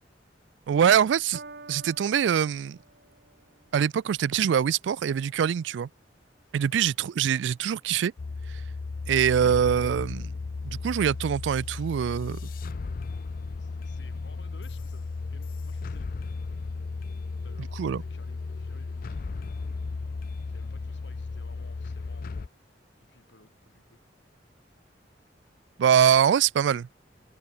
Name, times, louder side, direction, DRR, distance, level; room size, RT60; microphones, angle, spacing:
voice 1, 0.7-1.4 1.7-2.8 3.7-5.9 6.5-8.1 9.1-10.3 10.6-12.4 17.8-18.0 25.8-26.9, right 8 dB, 75° right, 0.3 m, -23 dB
Piano, 1.3-7.9 8.7-8.8, right 3 dB, 60° right, 2.9 m, -52 dB
sound 1, 8.2-22.5, left 4 dB, 50° left, 0.4 m, -35 dB
voice 2, 10.9-11.2 13.6-16.1 17.4-19.2 20.5-22.5 23.1-24.0, left 2 dB, 70° left, 4.2 m, -56 dB
open air
head